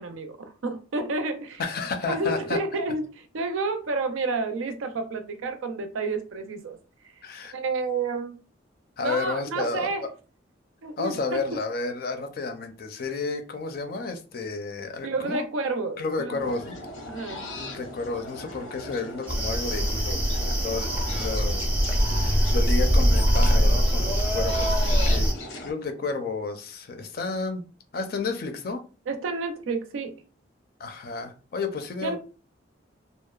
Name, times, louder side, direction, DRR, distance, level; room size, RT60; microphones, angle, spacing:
voice 1, 0.0-1.6 2.1-6.8 7.5-8.4 9.0-10.1 10.8-11.4 15.0-16.4 17.1-17.5 29.1-30.2 32.0-32.2, right 3 dB, 90° right, 0.5 m, -30 dB
voice 2, 1.6-2.6 7.2-7.5 9.0-9.9 11.0-15.4 16.0-16.8 17.6-27.6 27.9-28.8 30.8-32.2, left 3 dB, 50° left, 0.4 m, -32 dB
sound 1, 16.4-25.7, left 1 dB, 85° left, 0.7 m, -38 dB
sound 2, 19.3-25.3, equal, 10° right, 0.4 m, -22 dB
2.7 x 2.0 x 2.3 m
head